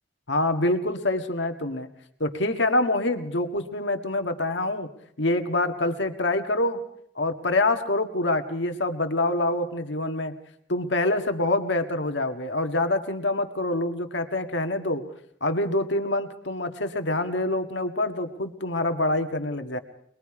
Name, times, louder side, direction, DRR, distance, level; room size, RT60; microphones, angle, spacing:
voice 1, 0.3-1.9 2.2-4.9 5.2-6.8 7.1-10.3 10.7-15.0 15.4-19.8, left 2 dB, 75° left, 6 dB, 1.8 m, -26 dB
24.5 x 21.5 x 4.9 m, 0.69 s
head